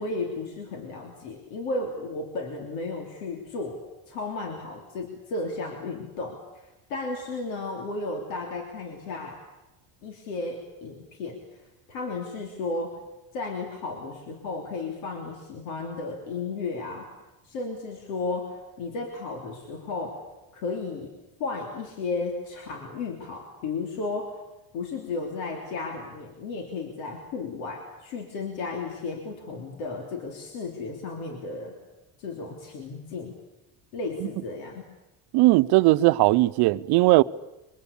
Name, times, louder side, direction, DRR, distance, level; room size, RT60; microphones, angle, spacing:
voice 1, 0.0-3.8 4.1-9.4 10.0-13.0 13.3-17.1 17.4-20.2 20.5-21.1 21.4-24.4 24.7-31.8 32.2-33.4 33.9-34.8, left 3 dB, 85° left, 3.5 m, -34 dB
voice 2, 35.3-37.2, right 19 dB, 70° right, 0.8 m, -18 dB
23.5 x 23.5 x 8.7 m
supercardioid pair, 95°, 40 cm